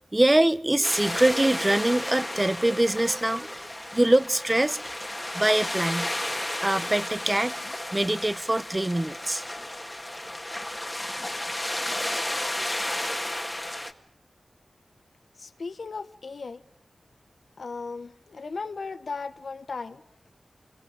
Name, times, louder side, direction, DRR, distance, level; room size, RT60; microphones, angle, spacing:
voice 1, 0.1-4.9 5.3-6.2 6.6-7.6 7.9-9.5, right 1 dB, 20° right, 0.9 m, -24 dB
sound 1, 0.8-13.9, left 1 dB, 15° left, 1.9 m, -33 dB
voice 2, 15.4-16.6 17.6-20.0, left 4 dB, 75° left, 0.9 m, -36 dB
27.5 x 23.0 x 4.9 m
wide cardioid pair, 75°, 0 cm